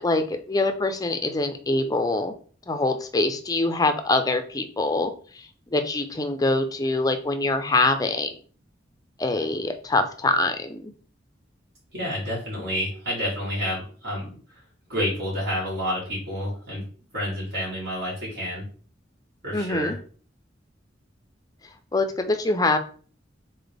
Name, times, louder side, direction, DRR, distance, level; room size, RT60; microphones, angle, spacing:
voice 1, 0.0-2.3 2.7-8.4 9.2-10.9 19.5-20.0 21.9-22.8, left 2 dB, 20° left, 7 dB, 0.5 m, -24 dB
voice 2, 11.9-14.3 14.9-16.8 17.1-18.6 19.4-19.9, equal, 65° right, -7 dB, 2.3 m, -29 dB
4.1 x 3.9 x 3.4 m, 0.42 s
head